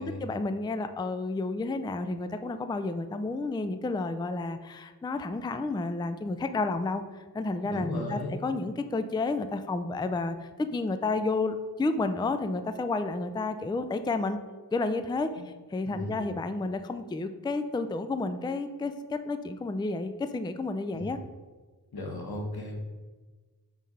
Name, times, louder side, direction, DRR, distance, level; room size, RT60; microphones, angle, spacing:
voice 1, 0.0-7.0 7.3-14.4 14.7-15.3 15.7-21.2, left 3 dB, 15° left, 10 dB, 0.4 m, -31 dB
voice 2, 7.6-8.3 15.4-15.5 15.9-16.2 20.9-21.2 21.9-22.8, left 1 dB, 85° left, 0 dB, 1.6 m, -36 dB
5.7 x 4.8 x 5.4 m, 1.3 s
wide cardioid pair, 85°, 36 cm